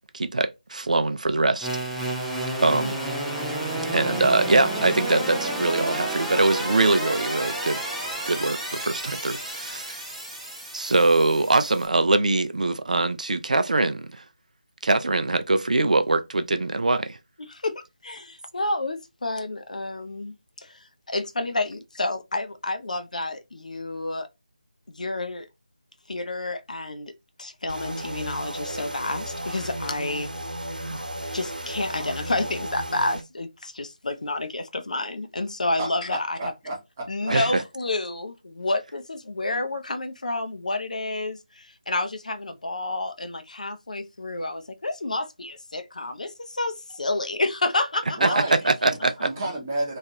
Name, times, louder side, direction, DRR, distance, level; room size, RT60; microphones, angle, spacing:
voice 1, 0.1-1.7 2.6-2.9 3.9-7.8 8.3-10.0 10.7-14.1 14.8-17.2 37.3-37.5 48.2-49.3, right 2 dB, 60° right, 0.4 m, -22 dB
sound 1, 1.6-11.9, right 1 dB, ahead, 0.4 m, -31 dB
voice 2, 17.5-24.3 24.9-25.5 26.1-27.1 27.4-30.3 30.9-31.0 31.3-36.4 37.1-48.4, left 2 dB, 65° left, 0.6 m, -30 dB
sound 2, 27.7-33.2, right 1 dB, 90° right, 1.0 m, -34 dB
voice 3, 35.8-37.4 48.2-48.7 49.2-50.0, right 2 dB, 20° right, 0.9 m, -31 dB
3.0 x 2.4 x 2.8 m
figure-of-eight pair, 160°, 4 cm